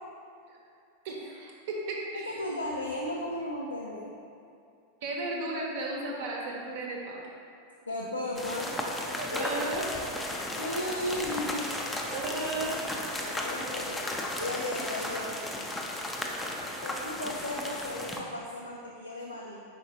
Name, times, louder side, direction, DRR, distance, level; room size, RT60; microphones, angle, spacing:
voice 1, 1.0-2.3 5.0-7.2 9.3-9.9 12.1-12.8, right 2 dB, 50° right, -2 dB, 0.7 m, -34 dB
voice 2, 2.1-4.1 7.9-8.7 9.1-9.6 10.6-11.8 13.2-15.5 16.8-19.6, left 1 dB, 80° left, -3 dB, 0.4 m, -35 dB
sound 1, 8.4-18.2, left 1 dB, 10° left, 0.4 m, -35 dB
4.7 x 3.9 x 2.6 m, 2.5 s
figure-of-eight pair, 90°, 0 cm